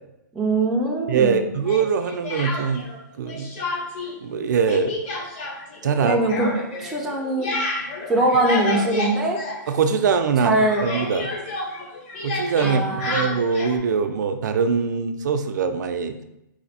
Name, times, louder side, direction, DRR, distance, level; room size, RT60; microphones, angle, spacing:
voice 1, 0.3-1.5 6.0-6.5 6.8-7.5 8.1-9.4 10.4-10.8 12.6-13.2, right 2 dB, 5° right, -3 dB, 0.4 m, -22 dB
voice 2, 1.1-2.9 3.2-3.5 4.2-5.0 5.8-6.2 9.7-11.3 12.2-16.2, right 6 dB, 65° right, 7 dB, 0.4 m, -22 dB
Speech, 1.6-3.0 3.3-4.1 4.4-10.1 10.4-13.8, left 2 dB, 40° left, 1.0 m, -30 dB
4.2 x 2.6 x 4.1 m, 0.86 s
hypercardioid pair, 170°, 10 cm